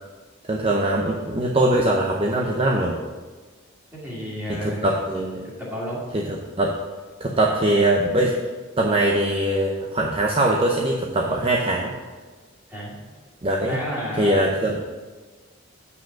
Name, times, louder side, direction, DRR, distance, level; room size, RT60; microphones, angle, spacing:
voice 1, 0.5-2.9 4.6-5.4 6.1-6.2 6.6-6.8 7.2-8.3 8.8-11.9 13.4-13.8 14.2-14.8, right 1 dB, 30° right, -1 dB, 0.7 m, -21 dB
voice 2, 3.9-5.0 5.4-6.0 12.7-13.0 13.6-14.3, equal, 10° right, -6 dB, 2.6 m, -31 dB
8.3 x 5.1 x 5.8 m, 1.4 s
head